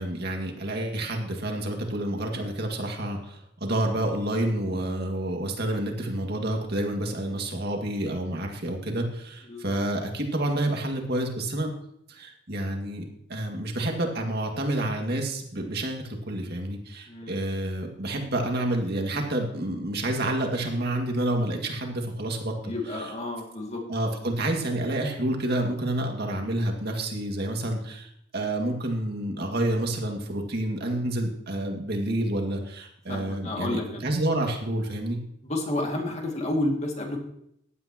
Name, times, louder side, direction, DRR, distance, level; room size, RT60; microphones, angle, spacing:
voice 1, 0.0-11.7 12.1-13.0 13.3-23.1 23.9-35.2, right 1 dB, 50° right, 2 dB, 2.1 m, -29 dB
voice 2, 9.5-9.8 17.1-17.3 22.6-23.8 33.1-34.1 35.5-37.2, left 1 dB, 35° left, 1 dB, 2.3 m, -30 dB
15.5 x 11.0 x 3.0 m, 0.73 s
head